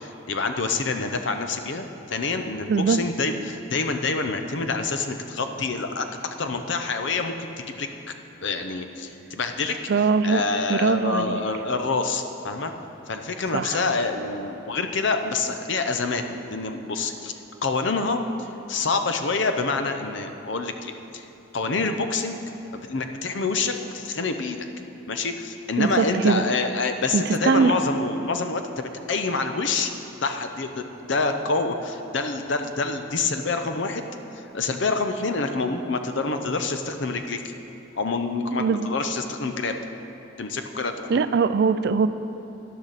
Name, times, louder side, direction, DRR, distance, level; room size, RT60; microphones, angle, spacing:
voice 1, 0.0-7.9 8.4-9.9 10.2-12.7 13.1-16.2 16.5-17.3 17.6-21.3 21.5-22.4 22.7-24.7 25.1-29.9 30.2-34.1 34.4-37.5 38.0-39.7 40.4-41.2, left 3 dB, 60° left, 7 dB, 0.7 m, -27 dB
voice 2, 2.7-3.0 9.9-10.4 10.7-11.4 13.5-13.8 25.8-26.4 27.1-27.7 38.6-38.9 41.1-42.1, right 5 dB, 50° right, 13 dB, 0.3 m, -21 dB
12.5 x 10.5 x 4.1 m, 2.9 s
head